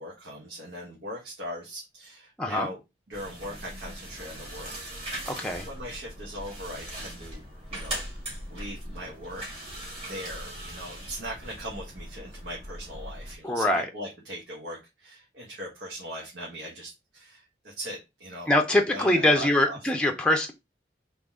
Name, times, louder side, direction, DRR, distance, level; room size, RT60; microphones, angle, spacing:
voice 1, 0.0-2.8 3.1-4.9 5.6-7.4 7.7-8.2 8.5-9.7 10.0-19.8, equal, 80° right, -4 dB, 1.3 m, -40 dB
sound 1, 3.1-13.4, right 1 dB, 35° right, 2.1 m, -40 dB
voice 2, 5.3-5.7 13.4-13.9 18.5-20.5, left 1 dB, 5° left, 3 dB, 0.5 m, -23 dB
3.9 x 3.0 x 3.5 m, 0.24 s
head